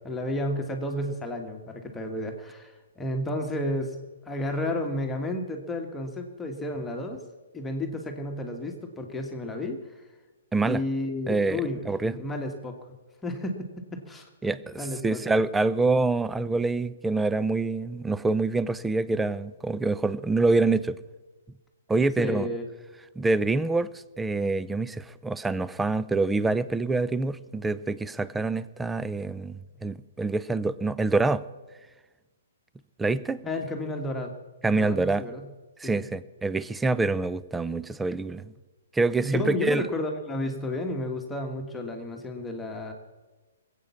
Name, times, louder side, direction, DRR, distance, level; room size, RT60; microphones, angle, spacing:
voice 1, 0.0-3.9 4.2-7.2 7.5-9.8 10.6-12.7 13.2-13.6 13.9-15.2 22.2-22.6 33.4-34.3 34.6-35.5 35.8-36.0 39.2-42.9, left 1 dB, 10° left, 2 dB, 1.7 m, -32 dB
voice 2, 11.3-12.2 14.4-21.0 21.9-22.5 23.2-23.9 24.2-31.4 33.0-33.4 34.6-35.2 35.8-38.5 38.9-39.9, right 3 dB, 5° right, 16 dB, 0.5 m, -26 dB
20.5 x 8.3 x 7.1 m, 1.2 s
figure-of-eight pair, 125°, 0 cm